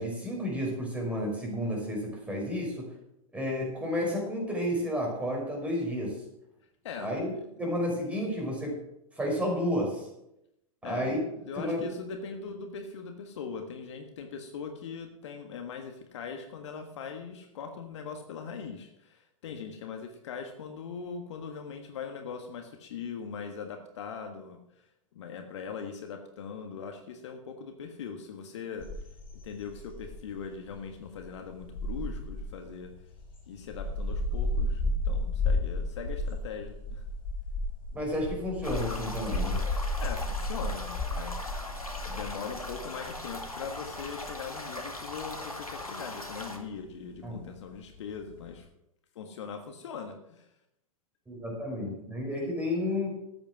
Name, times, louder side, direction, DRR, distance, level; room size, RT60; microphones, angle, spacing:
voice 1, 0.0-2.9 3.3-6.2 7.0-7.3 7.6-8.7 9.2-10.1 10.8-11.2 11.5-11.8 37.9-39.6 47.2-47.4 51.3-53.2, left 1 dB, 5° right, -1 dB, 5.4 m, -31 dB
voice 2, 6.8-7.4 10.8-11.2 11.4-24.6 25.1-28.9 29.4-32.9 33.5-37.0 40.0-41.3 42.1-48.7 49.1-50.5, left 6 dB, 55° left, 5 dB, 1.6 m, -40 dB
sound 1, 28.8-48.6, left 2 dB, 30° left, 5.9 m, -34 dB
sound 2, 38.6-46.6, left 2 dB, 90° left, 2.2 m, -40 dB
13.5 x 9.0 x 6.2 m, 0.83 s
figure-of-eight pair, 100°, 18 cm